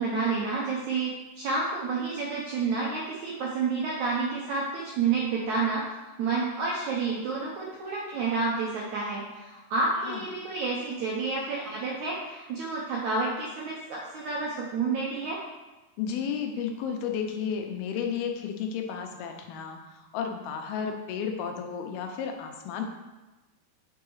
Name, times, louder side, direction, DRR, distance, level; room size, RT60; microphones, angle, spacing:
voice 1, 0.0-5.8 6.2-15.4, right 4 dB, 75° right, -4 dB, 1.7 m, -29 dB
voice 2, 16.0-22.8, left 7 dB, 85° left, 4 dB, 2.6 m, -32 dB
6.5 x 4.7 x 4.7 m, 1.1 s
omnidirectional pair, 4.5 m